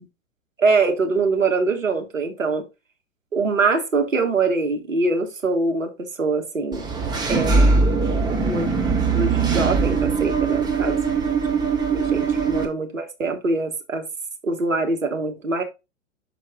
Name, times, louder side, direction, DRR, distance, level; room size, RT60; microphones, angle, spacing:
voice 1, 0.6-2.6 3.3-5.9 6.2-6.9 7.3-7.8 8.4-8.7 9.1-11.0 11.9-14.0 14.4-15.6, right 3 dB, 80° right, 1.6 m, -23 dB
Engine / Mechanisms, 6.7-12.6, right 4 dB, 10° right, 0.9 m, -21 dB
6.1 x 4.6 x 3.7 m
figure-of-eight pair, 110°, 39 cm